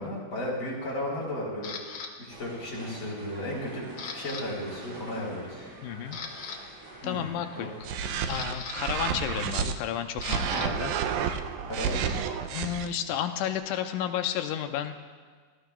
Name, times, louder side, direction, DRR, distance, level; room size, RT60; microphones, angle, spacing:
voice 1, 0.0-1.7 2.2-5.7 7.0-7.3 7.5-7.7 10.4-10.7 11.7-12.1, left 1 dB, 35° left, -5 dB, 4.0 m, -34 dB
Camera, 1.6-2.1 2.7-3.0 3.4-4.4 4.7-4.9 5.5-5.6 6.0-6.6 7.8-10.7 11.0-13.5, left 5 dB, 75° left, 1.1 m, -41 dB
sound 1, 2.3-8.0, right 2 dB, 55° right, 3.3 m, -47 dB
voice 2, 5.8-6.2 6.5-6.6 7.0-7.7 8.3-10.9 11.3-11.4 12.5-14.9, left 10 dB, 90° left, 6 dB, 2.2 m, -32 dB
sound 2, 7.8-9.7 10.2-12.9, right 7 dB, 80° right, 1.9 m, -30 dB
17.5 x 14.5 x 2.3 m, 1.5 s
omnidirectional pair, 3.7 m